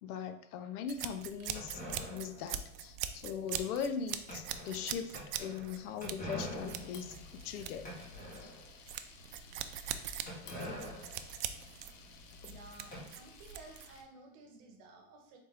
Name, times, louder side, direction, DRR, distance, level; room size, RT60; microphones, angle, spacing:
voice 1, 0.0-7.9 8.4-8.5, left 7 dB, 85° left, 9 dB, 0.7 m, -40 dB
sound 1, 0.9-14.0, right 10 dB, 65° right, 0.5 m, -42 dB
sound 2, 1.5-8.8 9.2-9.3 9.5-9.6 10.3-13.0, equal, 20° left, 1.2 m, -46 dB
Camera, 6.4-14.0, left 6 dB, 40° left, 0.4 m, -56 dB
voice 2, 12.4-15.4, right 3 dB, 45° right, 3 dB, 1.0 m, -54 dB
4.1 x 3.3 x 3.5 m, 0.76 s
supercardioid pair, 150°, 44 cm